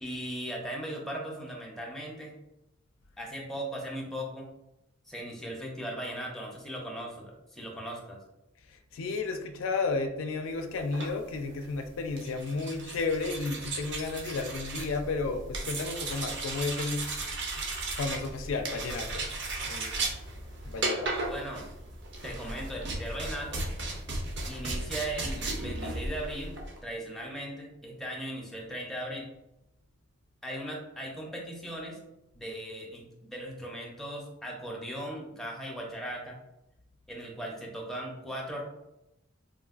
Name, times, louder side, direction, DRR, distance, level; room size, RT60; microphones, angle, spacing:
voice 1, 0.0-2.3 3.2-4.5 5.0-8.2 21.3-21.7 22.2-23.6 24.5-29.3 30.4-32.0 32.3-36.4 37.1-38.6, right 1 dB, ahead, -2 dB, 0.5 m, -38 dB
voice 2, 8.9-17.1 18.0-19.3 19.7-20.2 20.6-21.1, left 3 dB, 80° left, 5 dB, 0.4 m, -32 dB
sound 1, 10.8-26.8, right 2 dB, 60° right, 0.6 m, -36 dB
3.5 x 2.3 x 2.4 m, 0.89 s
head